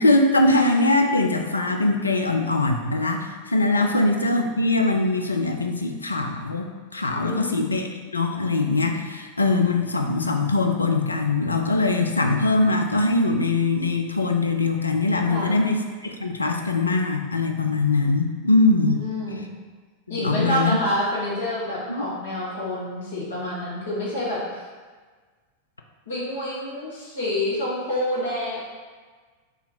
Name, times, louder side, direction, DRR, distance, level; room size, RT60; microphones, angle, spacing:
voice 1, 0.0-19.0 20.1-20.8 21.9-22.1, left 2 dB, 80° left, 4 dB, 0.3 m, -22 dB
voice 2, 7.1-7.5 15.3-15.7 18.8-19.5 20.1-24.4 26.1-28.6, left 1 dB, 65° left, -6 dB, 1.2 m, -28 dB
2.8 x 2.8 x 3.9 m, 1.4 s
figure-of-eight pair, 90°, 0 cm